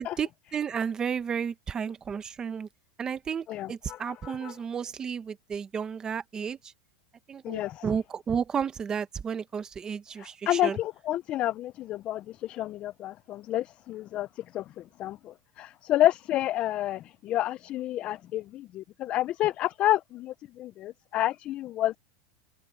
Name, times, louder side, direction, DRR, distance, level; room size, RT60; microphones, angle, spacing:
voice 1, 0.0-2.7 3.0-6.7 7.3-10.8, right 7 dB, 15° right, 0.9 m, -32 dB
voice 2, 3.5-4.5 7.4-7.8 10.2-14.3 14.5-14.6 15.0-22.0, left 14 dB, 25° left, 0.3 m, -29 dB
open air
supercardioid pair, 170°, 5 cm